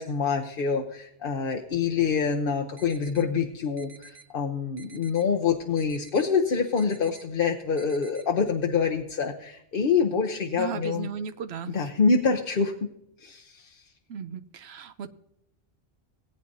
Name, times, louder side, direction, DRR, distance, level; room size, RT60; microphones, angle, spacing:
voice 1, 0.0-11.1 11.7-12.9 13.2-13.8, left 5 dB, 60° left, 3 dB, 0.9 m, -26 dB
sound 1, 2.8-3.3 3.8-4.3 4.8-5.3 5.8-6.3 6.8-7.2 7.8-8.2, right 5 dB, 45° right, 1.2 m, -51 dB
voice 2, 10.5-11.9 14.1-15.1, right 6 dB, 90° right, 10 dB, 0.9 m, -36 dB
19.0 x 9.2 x 2.6 m, 0.80 s
omnidirectional pair, 1.1 m